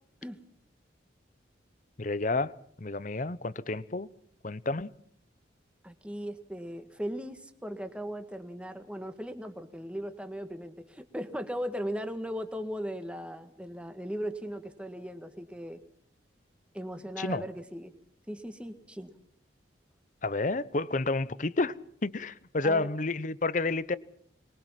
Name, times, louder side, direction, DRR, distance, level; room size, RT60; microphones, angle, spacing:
voice 1, 2.0-4.1 4.4-4.9 17.2-17.4 20.2-21.7 22.0-24.0, left 3 dB, 45° left, 0.8 m, -30 dB
voice 2, 5.8-15.8 16.7-17.9 18.3-19.1 22.6-22.9, equal, 5° right, 1.7 m, -38 dB
25.0 x 21.5 x 5.9 m
head